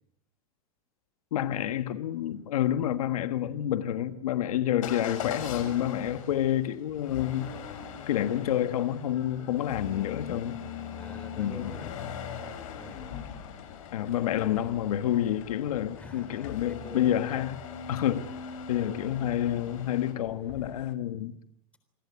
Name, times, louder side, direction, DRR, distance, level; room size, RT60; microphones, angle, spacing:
voice 1, 1.3-7.5 8.1-10.5 11.4-11.7 13.9-17.6 17.9-18.3 18.7-21.4, left 11 dB, 80° left, 1.5 m, -28 dB
Motor vehicle (road) / Engine starting / Accelerating revving vroom, 4.8-20.1, left 7 dB, 65° left, 6.0 m, -41 dB
sound 1, 6.9-7.7 8.1-10.3 10.6-11.2, right 11 dB, 35° right, 4.5 m, -56 dB
voice 2, 10.2-10.6 11.0-12.1 12.7-13.3 16.0-17.2, left 2 dB, 5° left, 3.7 m, -46 dB
sound 2, 11.4-16.8 20.1-20.9, left 10 dB, 50° left, 2.2 m, -48 dB
28.0 x 20.5 x 8.3 m
supercardioid pair, 160°, 18 cm